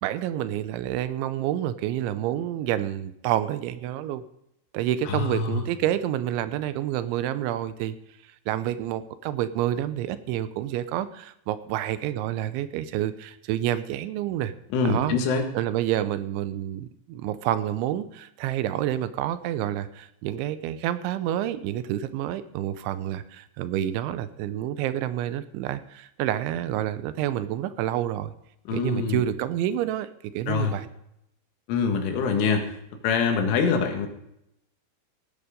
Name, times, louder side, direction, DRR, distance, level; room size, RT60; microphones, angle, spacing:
voice 1, 0.0-4.2 4.7-8.0 8.5-14.5 14.9-15.2 15.5-28.3 28.7-30.1 30.3-30.9, right 12 dB, 85° right, 13 dB, 3.0 m, -28 dB
voice 2, 5.1-5.6 14.7-15.4 28.7-29.2 30.5-30.8 31.7-32.7 33.0-34.1, left 5 dB, 90° left, 3 dB, 4.3 m, -24 dB
17.0 x 9.8 x 5.2 m, 0.78 s
omnidirectional pair, 5.5 m